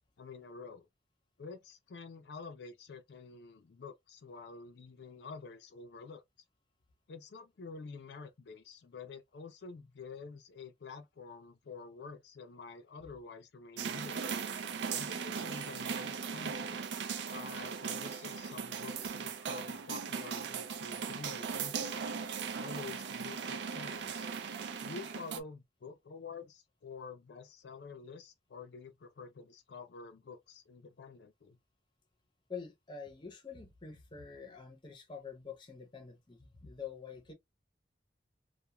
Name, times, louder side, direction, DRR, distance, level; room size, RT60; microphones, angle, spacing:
voice 1, 0.2-0.9 1.4-6.2 7.1-14.3 14.9-16.9 17.3-22.0 22.5-24.3 24.8-31.6, left 4 dB, 75° left, 0.4 m, -48 dB
sound 1, 13.8-25.4, right 6 dB, 80° right, 0.4 m, -38 dB
voice 2, 32.5-37.3, left 6 dB, 25° left, 0.6 m, -46 dB
2.3 x 2.1 x 2.9 m
head